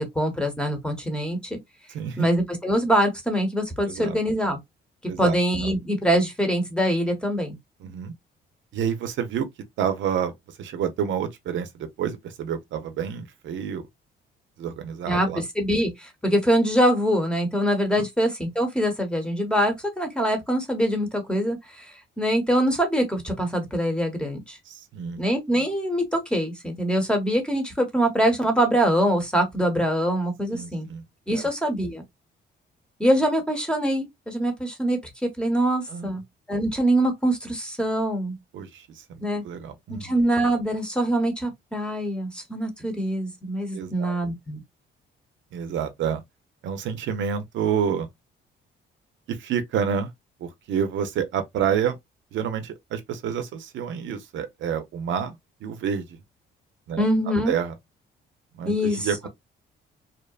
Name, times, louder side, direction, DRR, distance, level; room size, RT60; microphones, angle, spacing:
voice 1, 0.0-1.6 2.2-4.6 5.2-7.6 15.1-21.8 22.2-24.6 25.2-30.9 31.3-32.0 33.0-36.2 36.5-38.4 39.2-39.4 39.9-44.6 57.0-57.5 58.7-59.3, equal, 5° left, 1.0 m, -24 dB
voice 2, 1.9-2.3 3.9-4.2 5.1-5.7 7.8-8.1 8.7-9.5 9.8-10.3 10.6-13.9 14.6-15.4 18.0-18.1 24.7-25.2 30.5-31.0 31.3-31.5 35.9-36.1 38.5-40.1 43.7-44.2 45.5-46.2 46.6-48.1 49.3-50.1 50.4-52.0 52.3-55.4 55.6-56.0 56.9-57.1 57.5-57.7 58.6-59.3, right 8 dB, 70° right, 0.5 m, -28 dB
2.8 x 2.1 x 2.3 m
cardioid pair, 90°, 20 cm